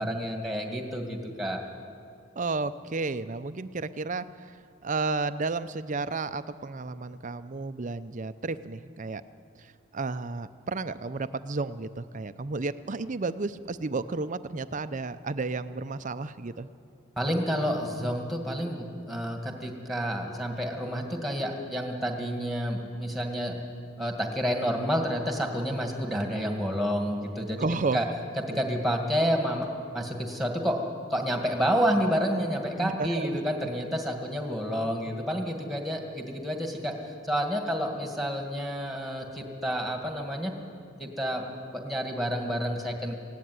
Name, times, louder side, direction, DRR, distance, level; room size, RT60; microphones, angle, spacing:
voice 1, 0.0-1.6 17.2-23.5 24.0-27.6 27.9-28.0 28.5-29.7 29.9-36.9 37.2-40.5 41.0-41.4 41.7-43.1, equal, ahead, 3 dB, 2.0 m, -29 dB
voice 2, 2.4-4.6 4.8-9.2 9.6-16.7 27.6-28.0 28.5-28.6 32.8-33.4, right 3 dB, 35° right, 13 dB, 0.6 m, -32 dB
17.5 x 16.0 x 9.6 m, 2.4 s
head